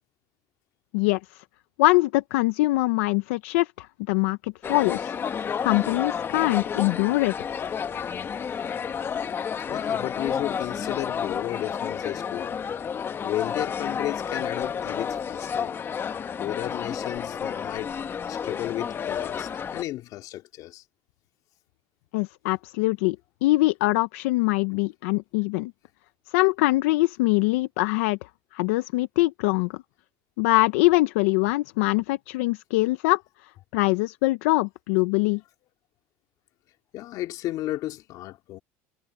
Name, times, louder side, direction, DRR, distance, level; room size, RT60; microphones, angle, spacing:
voice 1, 0.9-1.4 1.8-5.1 5.6-7.3 22.1-23.2 23.4-25.7 26.3-28.2 28.5-29.7 30.4-33.2 33.7-35.4, left 21 dB, 85° left, 0.7 m, -23 dB
sound 1, 4.6-19.8, left 7 dB, 30° left, 1.4 m, -31 dB
voice 2, 9.7-12.6 13.2-15.7 16.4-17.9 18.3-20.8 36.9-38.6, left 15 dB, 60° left, 2.7 m, -33 dB
supercardioid pair, 105°, 7 cm